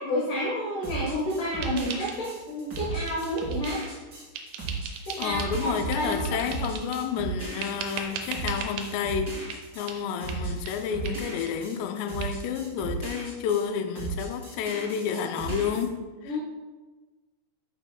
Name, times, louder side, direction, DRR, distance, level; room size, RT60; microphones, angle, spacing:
voice 1, 0.0-3.8 5.1-6.4 16.2-16.4, left 1 dB, 65° left, 2.2 m, -30 dB
sound 1, 0.8-13.7 13.9-15.8, right 4 dB, 35° right, 1.9 m, -35 dB
sound 2, 1.6-2.5 2.7-4.0 4.3-5.6 5.9-7.1 7.6-8.9 9.5-9.6 9.9-10.0 10.3-10.4 10.7-10.8 11.0-11.2 11.5-11.6 11.8-11.9 12.2-12.3, right 6 dB, 75° right, 2.5 m, -38 dB
voice 2, 5.2-16.4, left 7 dB, 80° left, 2.7 m, -30 dB
11.0 x 6.0 x 2.3 m
omnidirectional pair, 5.1 m